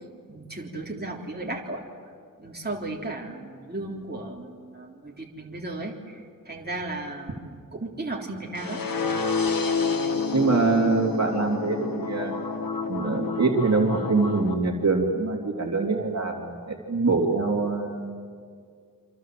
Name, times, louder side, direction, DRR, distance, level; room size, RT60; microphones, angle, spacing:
voice 1, 0.3-1.8 2.4-6.1 6.5-8.8, right 2 dB, 30° right, -2 dB, 3.6 m, -35 dB
sound 1, 8.6-14.5, left 4 dB, 80° left, 2.0 m, -28 dB
voice 2, 10.3-12.3 12.9-18.1, right 3 dB, 50° right, 1 dB, 3.5 m, -24 dB
28.0 x 26.5 x 7.8 m, 2.1 s
wide cardioid pair, 80°, 34 cm